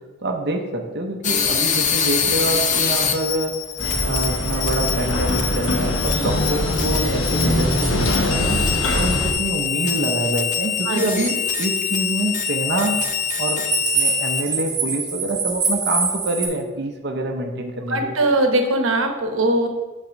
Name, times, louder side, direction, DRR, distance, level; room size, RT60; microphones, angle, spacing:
voice 1, 0.2-3.6 4.0-8.6 8.9-13.0 13.4-13.7 13.9-18.1, right 1 dB, 50° right, 2 dB, 0.7 m, -26 dB
sound 1, 1.2-14.4, left 8 dB, 35° left, 0.6 m, -25 dB
sound 2, 3.8-9.3, left 1 dB, 70° left, 1.0 m, -22 dB
sound 3, 3.8-16.5, right 4 dB, 20° right, 1.0 m, -29 dB
voice 2, 17.9-19.7, right 1 dB, 75° right, 4 dB, 1.0 m, -20 dB
5.8 x 4.2 x 6.3 m, 1.3 s
head